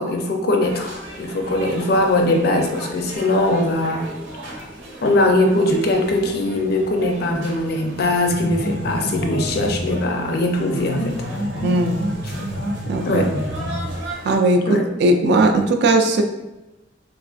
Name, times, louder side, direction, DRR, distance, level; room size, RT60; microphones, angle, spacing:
voice 1, 0.0-4.1 4.5-4.7 5.0-11.1 13.1-13.4 14.7-14.8, left 1 dB, 55° left, 3 dB, 0.4 m, -21 dB
sound 1, 0.6-14.4, right 1 dB, 85° right, 0.7 m, -36 dB
sound 2, 8.3-10.1 10.6-14.1, equal, 90° left, 0.7 m, -28 dB
voice 2, 11.6-12.0 12.9-13.2 14.2-16.2, right 2 dB, 60° right, 5 dB, 0.3 m, -18 dB
3.2 x 2.4 x 2.4 m, 1.0 s
head